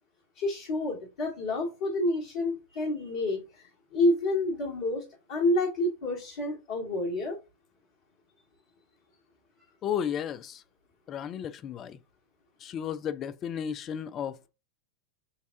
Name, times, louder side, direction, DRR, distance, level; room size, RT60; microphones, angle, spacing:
voice 1, 0.4-7.4, left 1 dB, 50° left, 1.5 m, -29 dB
voice 2, 9.8-10.6 11.1-12.0 12.6-14.5, left 8 dB, 30° left, 0.4 m, -33 dB
6.3 x 2.3 x 2.6 m
figure-of-eight pair, 90°, 0 cm